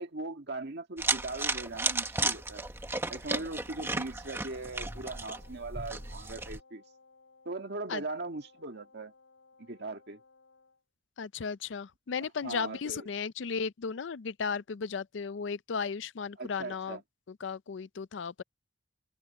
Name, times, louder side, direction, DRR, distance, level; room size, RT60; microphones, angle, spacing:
voice 1, 0.0-2.7 3.1-6.8 7.5-9.1 9.6-10.2 12.4-13.1 16.4-17.0, right 2 dB, 60° right, 1.8 m, -39 dB
sound 1, 1.0-6.6, right 3 dB, 15° right, 1.3 m, -34 dB
Wind instrument woodwind instrument, 3.5-10.8, left 3 dB, 85° left, 4.6 m, -61 dB
voice 2, 11.2-17.0 17.3-18.4, left 5 dB, 65° left, 0.5 m, -35 dB
head